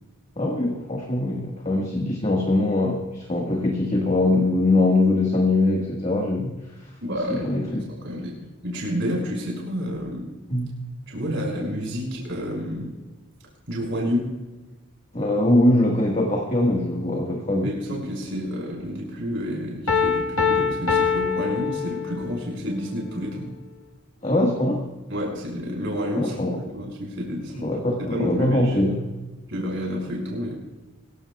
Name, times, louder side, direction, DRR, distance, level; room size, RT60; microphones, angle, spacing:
voice 1, 0.4-6.5 7.3-7.8 10.5-10.7 15.1-17.7 24.2-24.8 26.1-26.6 27.6-29.1, left 2 dB, 30° left, -1 dB, 1.6 m, -22 dB
voice 2, 7.0-8.4 8.6-10.3 11.1-12.9 13.7-14.3 17.6-23.5 25.1-27.7 28.0-28.8 29.5-30.5, equal, 60° right, -2 dB, 5.7 m, -29 dB
Piano, 19.9-22.4, left 5 dB, 85° left, 1.3 m, -23 dB
25.0 x 15.5 x 2.4 m, 1.2 s
head